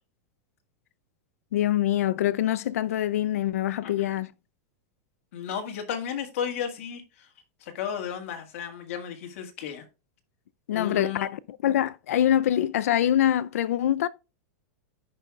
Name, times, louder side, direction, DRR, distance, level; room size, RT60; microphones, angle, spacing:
voice 1, 1.5-4.3 10.7-14.1, left 11 dB, 80° left, 0.5 m, -24 dB
voice 2, 3.8-4.1 5.3-7.3 7.6-9.9 10.7-11.3, left 8 dB, 60° left, 1.9 m, -34 dB
14.5 x 5.5 x 2.4 m
supercardioid pair, 160°, 8 cm